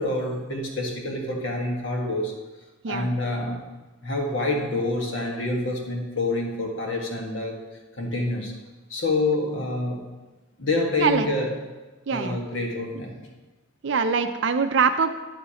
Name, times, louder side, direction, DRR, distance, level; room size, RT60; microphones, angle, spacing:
voice 1, 0.0-2.4 2.9-3.6 4.0-7.6 8.0-8.5 8.9-10.0 10.6-11.5 12.1-13.1, left 2 dB, 65° left, 0 dB, 1.6 m, -27 dB
voice 2, 12.1-12.4 13.8-15.2, right 5 dB, 60° right, 8 dB, 0.4 m, -23 dB
9.9 x 9.7 x 2.9 m, 1.2 s
head